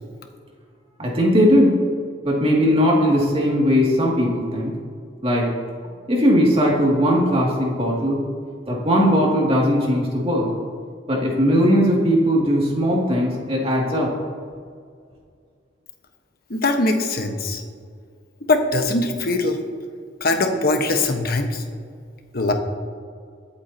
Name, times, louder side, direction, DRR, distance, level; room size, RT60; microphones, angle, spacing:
voice 1, 1.0-1.8 2.2-4.8 5.2-5.5 6.1-8.2 8.7-10.5 11.1-14.1, equal, 35° right, -3 dB, 2.5 m, -19 dB
voice 2, 16.5-17.6 18.5-19.6 20.2-21.6 22.3-22.5, left 2 dB, 55° left, 4 dB, 1.3 m, -21 dB
23.0 x 8.6 x 2.9 m, 2.1 s
head